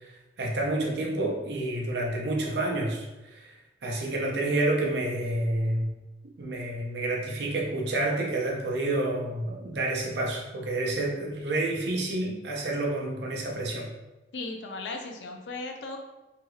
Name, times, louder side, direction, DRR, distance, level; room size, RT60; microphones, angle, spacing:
voice 1, 0.4-3.1 3.4-3.5 3.8-5.9 6.4-13.9, right 2 dB, 70° right, -1 dB, 0.6 m, -29 dB
voice 2, 14.3-16.0, left 3 dB, 80° left, 4 dB, 0.4 m, -36 dB
3.2 x 2.8 x 2.3 m, 1.0 s
head